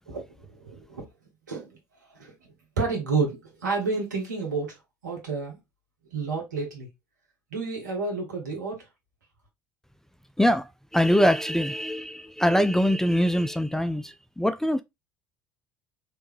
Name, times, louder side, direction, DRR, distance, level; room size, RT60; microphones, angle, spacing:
voice 1, 0.1-1.1 1.5-5.6 6.1-6.9 7.5-8.9, right 4 dB, 80° right, 1.3 m, -31 dB
voice 2, 10.4-14.8, equal, 5° left, 0.3 m, -23 dB
3.2 x 3.0 x 3.2 m
figure-of-eight pair, 60°, 9 cm